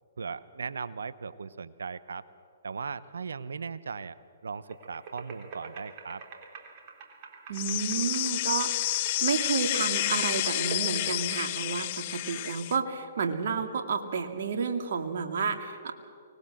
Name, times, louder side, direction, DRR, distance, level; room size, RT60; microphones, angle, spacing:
voice 1, 0.2-2.2 2.6-4.2 4.4-6.2, right 5 dB, 80° right, 16 dB, 0.9 m, -38 dB
sound 1, 4.7-11.9, right 4 dB, 45° right, 3.7 m, -46 dB
sound 2, 7.5-12.8, left 16 dB, 45° left, 0.5 m, -30 dB
voice 2, 7.5-15.9, right 5 dB, 65° right, 5 dB, 2.3 m, -31 dB
24.0 x 20.0 x 7.8 m, 2.2 s
hypercardioid pair, 125°, 0 cm